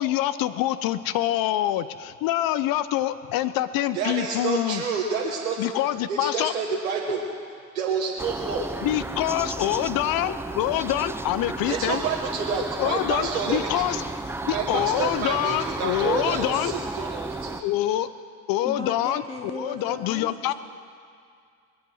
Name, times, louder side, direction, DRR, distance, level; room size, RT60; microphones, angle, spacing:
voice 1, 0.0-4.8 5.6-6.5 8.8-12.0 12.8-14.0 14.4-16.7 17.6-18.1 18.5-20.5, left 13 dB, 60° left, 14 dB, 0.9 m, -25 dB
voice 2, 3.9-5.7 6.1-7.2 7.7-8.7 11.7-14.0 14.4-17.6, right 5 dB, 90° right, -2 dB, 1.5 m, -29 dB
sound 1, 8.2-17.6, right 2 dB, 5° right, 0.6 m, -33 dB
voice 3, 18.6-20.5, left 2 dB, 15° left, 0 dB, 2.4 m, -36 dB
22.0 x 8.2 x 6.3 m, 2.2 s
hypercardioid pair, 70°, 40 cm